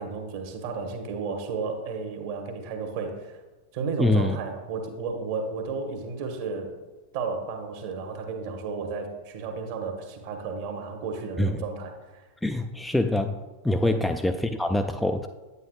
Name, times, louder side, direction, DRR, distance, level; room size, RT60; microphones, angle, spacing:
voice 1, 0.0-3.4 3.7-6.7 7.1-12.3 13.8-14.0, right 4 dB, 50° right, 3 dB, 1.2 m, -33 dB
voice 2, 4.0-4.4 11.4-11.6 12.4-13.4 13.6-15.3, left 1 dB, 5° left, 6 dB, 0.3 m, -24 dB
9.1 x 8.2 x 2.3 m, 1.2 s
figure-of-eight pair, 90°, 0 cm